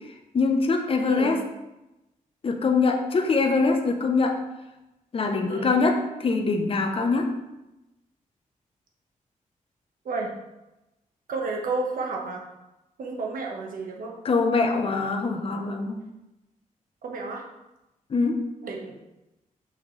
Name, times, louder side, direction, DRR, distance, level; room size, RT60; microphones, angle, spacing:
voice 1, 0.0-1.4 2.4-4.4 5.1-7.3 14.2-16.1 18.1-18.5, left 4 dB, 40° left, 4 dB, 0.8 m, -23 dB
voice 2, 11.3-12.4 13.0-14.2 17.0-17.4 18.6-18.9, right 3 dB, 80° right, 0 dB, 1.3 m, -31 dB
6.2 x 5.7 x 3.2 m, 0.96 s
wide cardioid pair, 110°, 14 cm